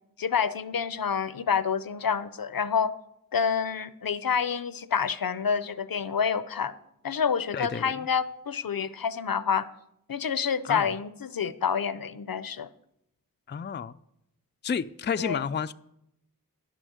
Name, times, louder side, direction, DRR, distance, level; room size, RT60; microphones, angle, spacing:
voice 1, 0.2-2.9 3.3-6.7 7.0-9.7 10.1-12.7 15.2-15.4, left 6 dB, 75° left, 0.6 m, -28 dB
voice 2, 7.5-8.0 10.7-10.9 13.5-14.0 14.6-15.7, left 7 dB, 35° left, 0.4 m, -30 dB
11.5 x 6.3 x 8.0 m
wide cardioid pair, 60°, 35 cm